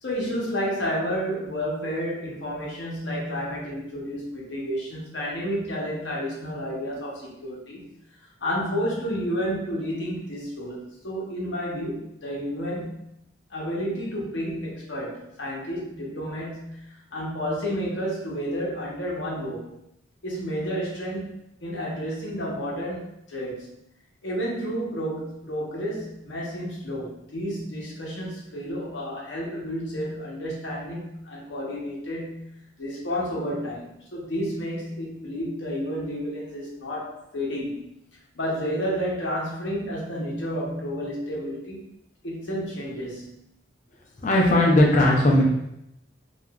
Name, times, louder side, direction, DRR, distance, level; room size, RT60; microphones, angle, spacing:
voice 1, 0.0-7.9 8.4-13.0 13.5-19.8 20.2-21.3 21.6-23.8 24.2-37.9 38.3-41.8 42.2-43.4, equal, 70° left, -4 dB, 0.8 m, -31 dB
voice 2, 44.2-45.4, left 1 dB, 40° left, -2 dB, 0.5 m, -18 dB
2.9 x 2.4 x 2.2 m, 0.80 s
head